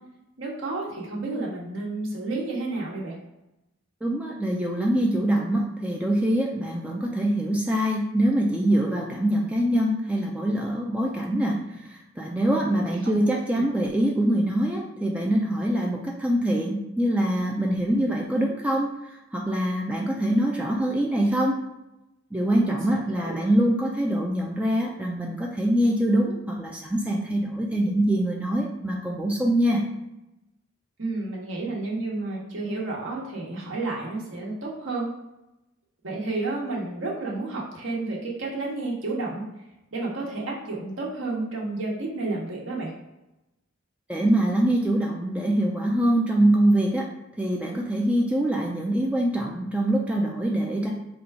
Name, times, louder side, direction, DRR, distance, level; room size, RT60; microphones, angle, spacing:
voice 1, 0.4-3.1 12.5-13.1 13.5-13.7 22.5-23.4 31.0-35.1 36.0-39.4 39.9-42.9, right 2 dB, 70° right, -2 dB, 1.1 m, -31 dB
voice 2, 4.0-21.6 22.3-29.8 44.1-47.1 47.4-50.9, right 1 dB, 5° right, -1 dB, 0.3 m, -24 dB
3.7 x 2.3 x 4.5 m, 0.94 s
head